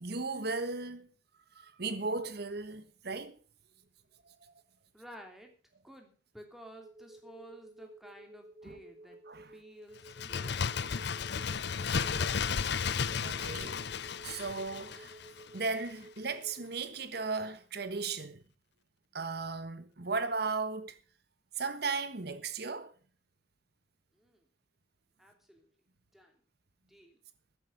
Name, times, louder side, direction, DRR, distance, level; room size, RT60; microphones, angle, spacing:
voice 1, 0.0-1.1 1.5-3.4 4.4-4.5 8.6-8.8 9.3-9.5 13.2-13.8 14.2-15.2 15.5-18.4 19.1-21.0 21.6-22.9, right 4 dB, 60° right, 1.4 m, -36 dB
voice 2, 4.9-5.5 5.8-9.2 9.5-10.7 24.1-24.4 25.2-25.7 26.1-26.4 26.9-27.2, right 1 dB, ahead, 2.9 m, -53 dB
sound 1, 6.8-16.7, right 2 dB, 25° right, 0.7 m, -54 dB
Bird, 10.0-15.6 15.9-16.0, left 6 dB, 60° left, 0.6 m, -34 dB
13.5 x 10.5 x 5.2 m
head